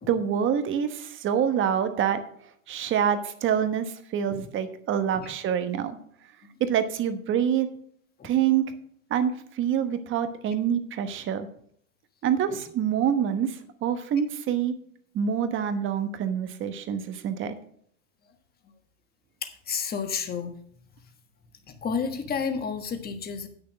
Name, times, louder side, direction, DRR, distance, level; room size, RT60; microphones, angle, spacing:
voice 1, 0.1-6.0 6.6-7.7 8.2-8.7 9.1-11.5 12.2-14.7 15.1-17.5, right 8 dB, 30° right, 10 dB, 1.1 m, -26 dB
voice 2, 19.4-20.5 21.7-23.5, left 6 dB, 25° left, 7 dB, 1.4 m, -31 dB
8.2 x 6.6 x 6.3 m, 0.63 s
hypercardioid pair, 115°, 38 cm